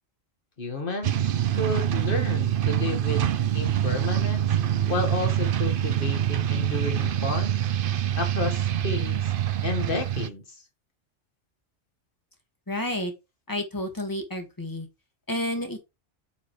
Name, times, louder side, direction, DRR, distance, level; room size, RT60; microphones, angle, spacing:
voice 1, 0.6-4.5 4.9-7.6 8.2-9.3 9.6-10.4, left 3 dB, 45° left, 1.9 m, -31 dB
sound 1, 1.0-10.3, right 10 dB, 55° right, 0.7 m, -25 dB
voice 2, 12.7-13.1 13.5-14.9 15.3-15.8, left 1 dB, 15° left, 1.9 m, -30 dB
8.4 x 7.8 x 3.3 m
omnidirectional pair, 1.3 m